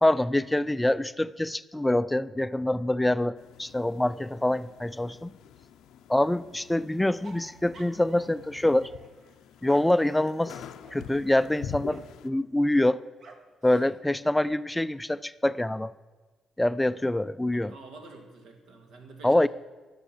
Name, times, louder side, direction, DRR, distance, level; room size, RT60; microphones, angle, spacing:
voice 1, 0.0-5.3 6.1-8.9 9.6-10.5 10.9-13.0 13.6-15.9 16.6-17.7 19.2-19.5, left 1 dB, 10° left, 17 dB, 0.3 m, -25 dB
sound 1, 3.3-12.3, left 8 dB, 85° left, 0.5 m, -46 dB
sound 2, 7.2-8.5 8.8-12.2 13.2-13.6 13.9-14.5, right 3 dB, 55° right, 1.3 m, -53 dB
voice 2, 17.5-19.5, right 3 dB, 80° right, 3 dB, 2.1 m, -48 dB
11.5 x 6.2 x 7.2 m, 1.3 s
cardioid pair, 90°, 0 cm